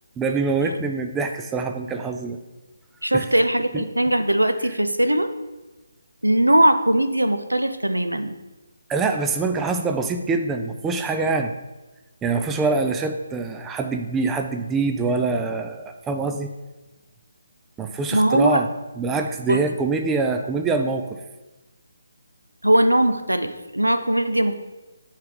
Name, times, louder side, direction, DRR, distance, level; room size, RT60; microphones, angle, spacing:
voice 1, 0.2-2.4 3.1-3.3 3.7-3.8 8.9-11.5 12.2-16.5 17.8-18.7 19.0-21.2, right 4 dB, 10° right, 6 dB, 0.4 m, -24 dB
voice 2, 3.0-5.3 6.2-8.4 18.1-18.6 19.5-19.6 22.6-24.5, right 1 dB, 85° right, 10 dB, 0.6 m, -20 dB
10.0 x 3.4 x 5.2 m, 1.1 s
figure-of-eight pair, 145°, 0 cm